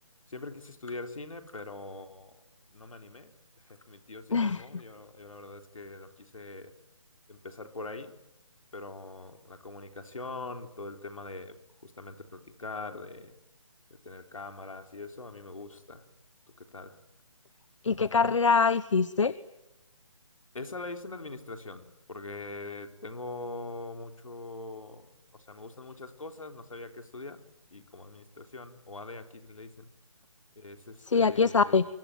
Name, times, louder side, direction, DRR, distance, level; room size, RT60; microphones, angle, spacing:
voice 1, 0.3-2.4 2.7-6.7 7.3-8.1 8.7-11.6 11.8-13.3 14.0-16.0 16.6-17.0 20.5-27.4 27.7-29.9 30.6-31.8, left 3 dB, 80° left, 6 dB, 3.9 m, -42 dB
voice 2, 4.3-4.6 17.8-19.3 31.1-31.8, left 5 dB, 65° left, 16 dB, 1.1 m, -24 dB
25.0 x 24.0 x 9.3 m, 0.93 s
hypercardioid pair, 165°, 17 cm